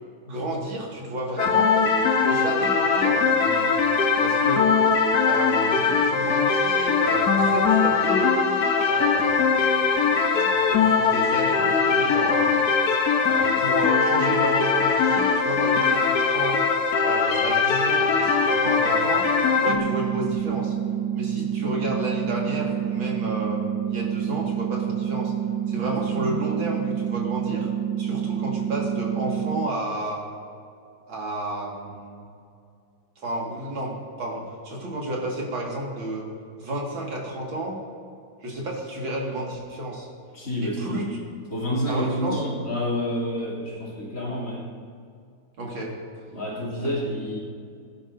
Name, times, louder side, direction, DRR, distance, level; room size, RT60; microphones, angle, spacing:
voice 1, 0.3-1.7 2.3-3.7 4.2-4.7 5.2-8.4 8.9-10.0 10.3-12.5 13.2-16.6 17.0-19.3 19.6-20.8 21.1-23.6 23.9-25.3 25.7-27.7 28.0-30.2 31.1-32.3 33.2-36.3 36.6-37.8 38.4-40.1 40.6-41.2 41.9-42.4 45.6-45.9 46.8-47.0, right 1 dB, 85° right, -2 dB, 2.8 m, -31 dB
sound 1, 1.4-19.8, left 5 dB, 60° left, 1.4 m, -21 dB
sound 2, 19.7-29.7, right 9 dB, 70° right, 0.9 m, -28 dB
voice 2, 25.7-26.3 40.3-41.1 41.5-44.7 46.3-47.4, equal, 40° left, -5 dB, 3.3 m, -29 dB
19.0 x 11.0 x 2.7 m, 2.3 s
omnidirectional pair, 2.1 m